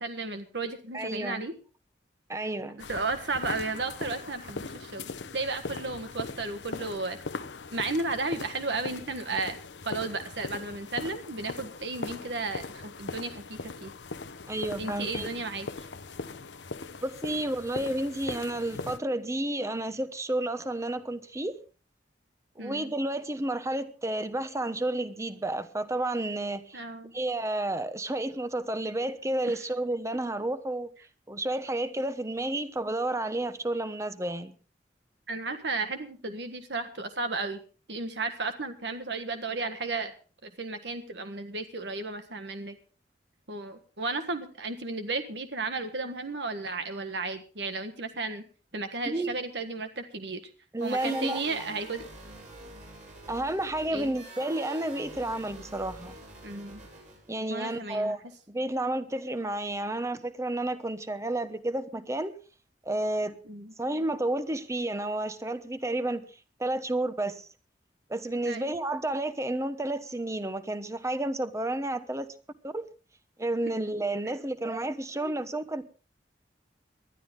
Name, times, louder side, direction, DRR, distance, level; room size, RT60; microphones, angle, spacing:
voice 1, 0.0-1.5 2.9-7.2 7.7-9.6 9.8-13.9 14.8-15.9 22.6-22.9 26.7-27.1 29.5-29.6 35.3-37.6 37.9-40.1 40.4-42.8 43.5-48.5 48.7-50.4 50.8-52.1 53.9-54.1 56.4-56.8 57.5-58.2 63.4-63.7 68.4-68.7, right 3 dB, 70° right, 1.5 m, -34 dB
voice 2, 0.9-1.4 2.3-2.8 14.5-15.3 17.0-21.6 22.6-26.8 27.1-30.9 31.3-34.5 49.1-49.4 50.7-51.4 53.3-56.1 57.3-58.2 58.5-62.4 62.8-63.4 63.8-66.2 66.6-67.5 68.1-72.3 72.6-72.8 73.4-75.9, right 1 dB, 15° right, 1.1 m, -31 dB
sound 1, 2.8-19.0, left 3 dB, 90° left, 0.9 m, -40 dB
sound 2, 50.8-57.3, right 2 dB, 45° right, 6.8 m, -46 dB
20.0 x 12.5 x 3.7 m
head